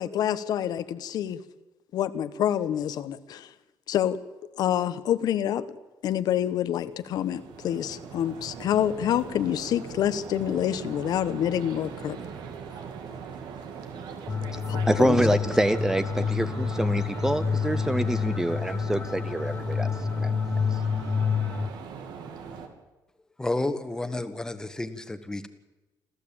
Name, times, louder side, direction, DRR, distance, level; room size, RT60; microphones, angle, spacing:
voice 1, 0.0-1.4 1.9-3.5 3.9-4.2 4.6-5.7 6.0-12.2 14.7-15.2, left 10 dB, 65° left, 12 dB, 1.2 m, -27 dB
sound 1, 6.9-22.7, right 6 dB, 80° right, 3.2 m, -40 dB
sound 2, 14.3-21.7, left 6 dB, 25° left, 1.2 m, -28 dB
voice 2, 14.9-19.9 20.2-20.3 20.7-20.8, right 1 dB, 5° right, 12 dB, 0.8 m, -26 dB
voice 3, 23.4-25.5, left 2 dB, 10° left, 10 dB, 1.6 m, -31 dB
27.0 x 15.0 x 8.8 m, 1.1 s
cardioid pair, 140°, 7 cm